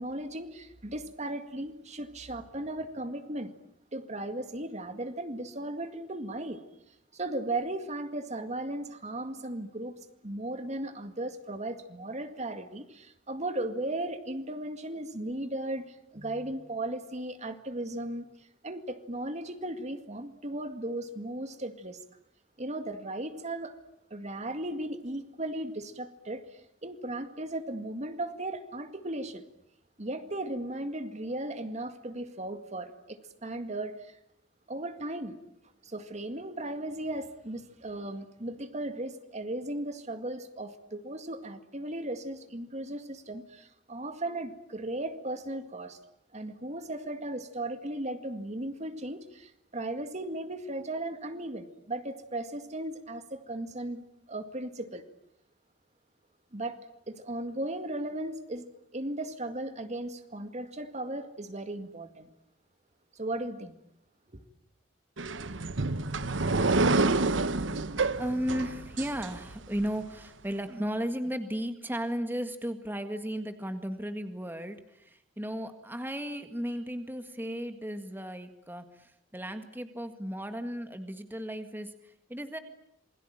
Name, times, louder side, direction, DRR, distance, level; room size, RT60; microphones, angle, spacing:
voice 1, 0.0-3.5 3.9-6.6 7.1-10.0 10.2-18.3 18.6-22.0 22.6-23.8 24.1-29.4 30.0-34.2 34.7-35.4 35.8-46.0 46.3-54.0 54.3-55.0 56.5-56.8 57.1-58.7 58.9-62.3 63.2-63.8 64.3-64.4, right 1 dB, 40° right, 8 dB, 2.0 m, -36 dB
sound 1, 65.2-69.9, right 3 dB, 85° right, 1.1 m, -28 dB
voice 2, 67.0-82.6, equal, 10° right, 7 dB, 1.8 m, -35 dB
27.5 x 22.0 x 9.0 m, 0.76 s
head